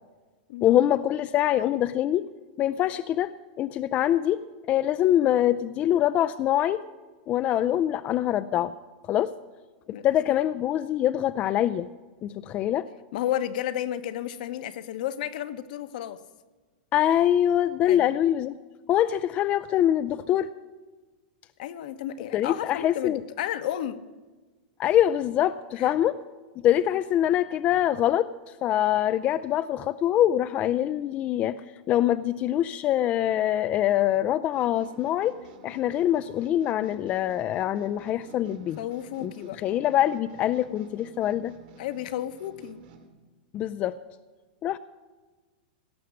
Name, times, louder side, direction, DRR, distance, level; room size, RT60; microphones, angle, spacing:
voice 1, 0.6-2.3 2.6-3.3 3.6-4.4 4.7-6.8 7.3-8.7 9.1-9.3 10.0-11.9 12.2-12.9 16.9-18.5 18.9-20.5 22.3-23.2 24.8-26.2 26.6-28.3 28.6-31.6 31.9-35.4 35.6-38.8 39.2-39.3 39.6-41.6 43.5-44.0 44.6-44.8, left 12 dB, 30° left, 12 dB, 0.4 m, -24 dB
voice 2, 13.1-16.2 17.9-18.1 21.6-24.0 25.8-25.9 38.8-39.6 41.8-42.8, left 11 dB, 65° left, 11 dB, 1.0 m, -32 dB
sound 1, 34.5-43.1, right 5 dB, 65° right, 2.7 m, -51 dB
17.5 x 6.1 x 9.5 m, 1.3 s
supercardioid pair, 145°, 5 cm